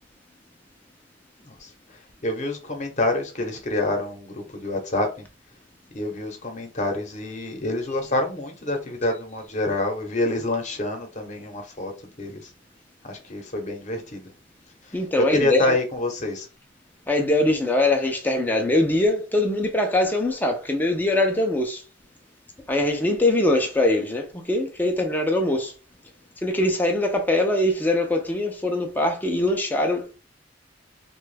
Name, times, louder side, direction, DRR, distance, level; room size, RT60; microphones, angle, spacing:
voice 1, 2.2-5.1 5.9-11.9 12.2-12.4 13.0-14.3 15.2-16.5, left 2 dB, 40° left, 0.8 m, -27 dB
voice 2, 14.9-15.7 17.1-21.8 22.7-25.7 26.4-30.1, left 1 dB, 10° left, 0.5 m, -22 dB
3.0 x 2.3 x 3.2 m
head